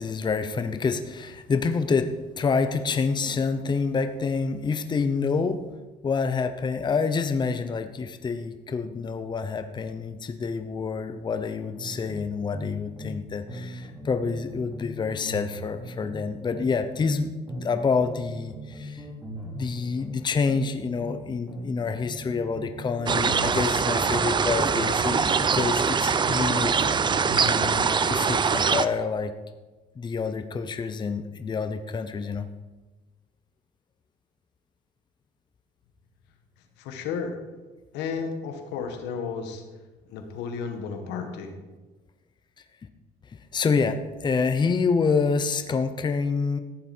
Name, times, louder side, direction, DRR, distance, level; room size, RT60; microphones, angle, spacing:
voice 1, 0.0-5.6 6.0-19.0 19.4-27.1 27.4-29.3 30.0-32.5 43.3-46.6, left 5 dB, 25° left, 9 dB, 0.8 m, -27 dB
sound 1, 11.8-13.2 13.5-17.2 17.5-21.2 21.5-25.2 25.5-27.6, equal, 10° right, 4.1 m, -39 dB
sound 2, 23.1-28.9, right 5 dB, 25° right, 0.6 m, -23 dB
voice 2, 36.8-37.4 37.9-39.6 40.1-41.5, left 5 dB, 90° left, 5 dB, 1.8 m, -33 dB
14.5 x 10.5 x 4.5 m, 1.2 s
cardioid pair, 110°, 17 cm